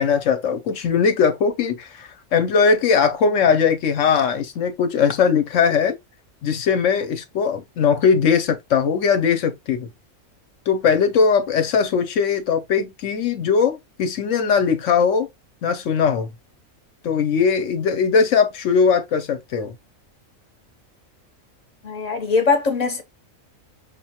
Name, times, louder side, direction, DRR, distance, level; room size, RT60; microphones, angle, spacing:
voice 1, 0.0-5.9 6.4-9.9 10.7-15.3 15.6-16.3 17.0-19.7, left 6 dB, 65° left, 1.0 m, -20 dB
voice 2, 21.8-23.0, left 4 dB, 35° left, 0.9 m, -21 dB
5.5 x 2.2 x 2.8 m
omnidirectional pair, 1.4 m